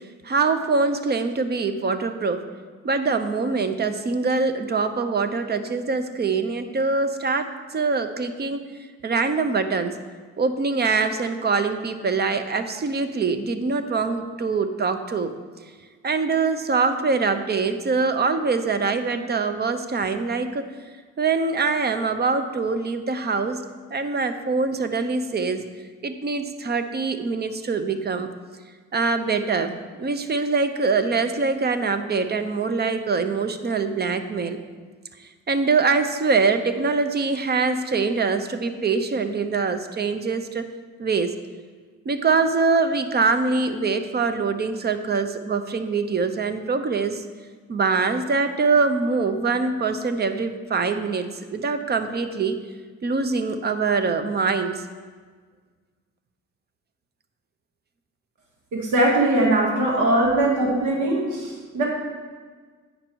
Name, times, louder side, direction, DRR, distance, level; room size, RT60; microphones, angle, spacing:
voice 1, 0.2-2.4 2.8-8.6 9.0-10.0 10.4-15.3 16.0-20.7 21.2-23.6 23.9-25.7 26.0-28.3 28.9-34.6 35.5-40.6 41.0-41.3 42.1-47.2 47.7-52.6 53.0-54.8, right 4 dB, 35° right, 9 dB, 0.7 m, -24 dB
voice 2, 58.7-61.8, right 1 dB, 80° right, -2 dB, 2.0 m, -21 dB
9.0 x 5.3 x 4.5 m, 1.5 s
cardioid pair, 90°, 30 cm